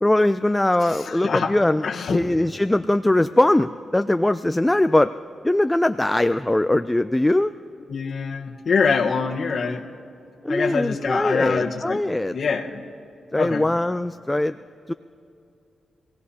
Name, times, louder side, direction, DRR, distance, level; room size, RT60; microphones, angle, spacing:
voice 1, 0.0-5.1 5.4-7.5 10.4-12.4 13.3-14.6 14.9-15.0, left 1 dB, 15° left, 11 dB, 0.3 m, -21 dB
voice 2, 0.9-1.5 1.8-2.2 7.9-9.8 10.5-12.0 12.3-12.8 13.4-13.6, left 5 dB, 65° left, 1 dB, 1.2 m, -24 dB
25.5 x 17.5 x 2.8 m, 2.6 s
cardioid pair, 65°, 0 cm